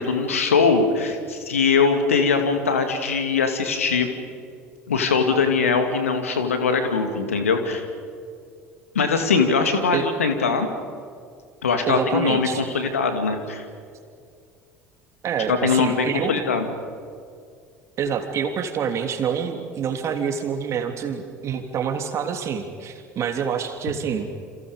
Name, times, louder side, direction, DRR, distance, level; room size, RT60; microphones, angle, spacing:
voice 1, 0.0-4.1 4.9-7.8 8.9-10.7 11.6-13.6 15.5-16.7, left 5 dB, 80° left, 6 dB, 2.5 m, -21 dB
voice 2, 11.9-12.6 15.2-16.4 18.0-24.4, right 7 dB, 40° right, 5 dB, 3.1 m, -27 dB
29.0 x 27.5 x 5.3 m, 2.3 s
figure-of-eight pair, 65°, 7 cm